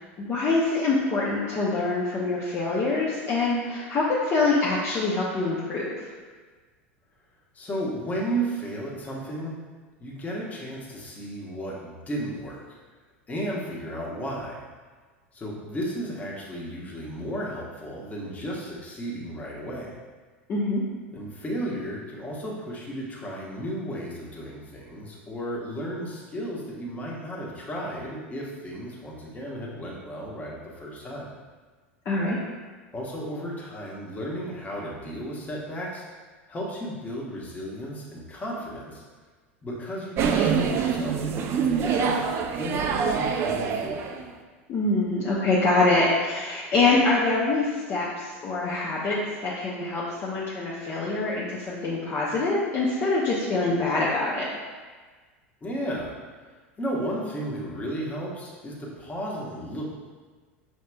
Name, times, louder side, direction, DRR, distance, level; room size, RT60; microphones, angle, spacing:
voice 1, 0.2-6.1 20.5-20.8 32.1-32.4 44.7-54.5, left 3 dB, 35° left, -6 dB, 0.7 m, -25 dB
voice 2, 7.5-9.5 10.0-12.8 13.3-14.6 15.3-19.9 21.1-31.3 32.9-36.0 36.5-39.0 39.6-42.3 42.5-44.2 55.6-56.1 56.8-59.8, right 1 dB, 20° left, -4 dB, 1.0 m, -34 dB
sound 1, 40.2-44.3, right 6 dB, 40° right, 0.4 m, -25 dB
5.7 x 2.9 x 2.2 m, 1.4 s
hypercardioid pair, 85°, 7 cm